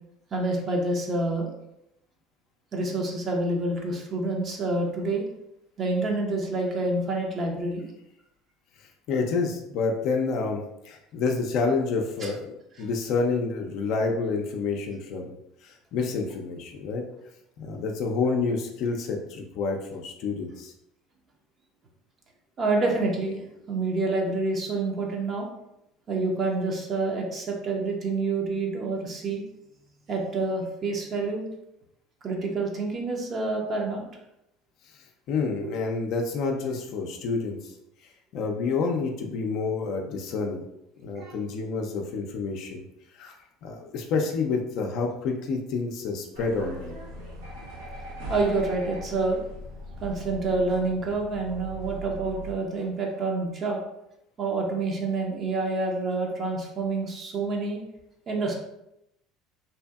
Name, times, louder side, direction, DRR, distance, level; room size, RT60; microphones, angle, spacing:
voice 1, 0.3-1.5 2.7-5.2 5.8-7.9 12.2-12.3 22.6-23.4 23.7-25.5 26.1-29.4 30.1-31.5 32.2-34.1 41.2-41.4 48.3-49.5 50.0-53.8 54.4-57.8 58.3-58.5, right 3 dB, 40° right, 0 dB, 0.7 m, -27 dB
voice 2, 9.1-15.3 15.6-17.0 17.6-20.7 35.3-37.7 38.3-40.6 41.0-42.8 43.1-43.3 43.6-46.9, left 4 dB, 60° left, 2 dB, 0.4 m, -28 dB
sound 1, 46.3-52.5, right 1 dB, 85° right, 0.8 m, -39 dB
2.7 x 2.5 x 2.3 m, 0.82 s
hypercardioid pair, 75°, 0 cm